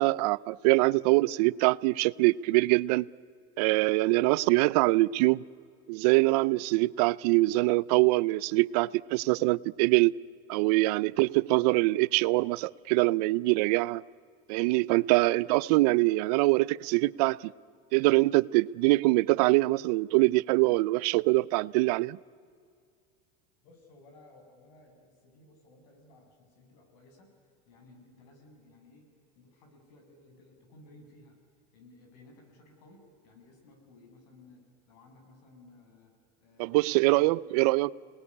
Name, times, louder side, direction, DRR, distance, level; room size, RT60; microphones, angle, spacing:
voice 1, 0.0-3.0 3.6-5.4 5.9-10.1 10.5-14.0 14.5-17.5 17.9-22.2 36.6-37.9, right 21 dB, 75° right, 0.6 m, -24 dB
voice 2, 23.6-27.3 27.7-29.1 29.4-31.4 31.7-36.1 36.4-37.9, left 2 dB, 80° left, 7.1 m, -57 dB
27.5 x 19.5 x 9.8 m
supercardioid pair, 140°, 20 cm